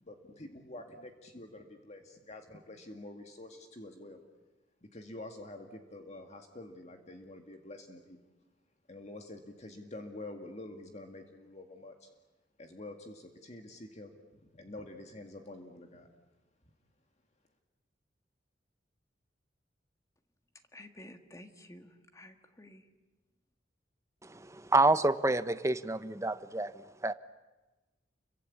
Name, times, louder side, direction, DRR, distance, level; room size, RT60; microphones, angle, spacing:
voice 1, 0.0-4.2 4.8-8.2 8.9-12.1 12.6-14.2 14.5-16.1, left 2 dB, 35° left, 2.0 m, -47 dB
voice 2, 20.7-22.9, left 1 dB, 15° left, 2.0 m, -52 dB
voice 3, 24.2-27.1, right 2 dB, 15° right, 0.9 m, -28 dB
29.5 x 23.5 x 8.6 m
head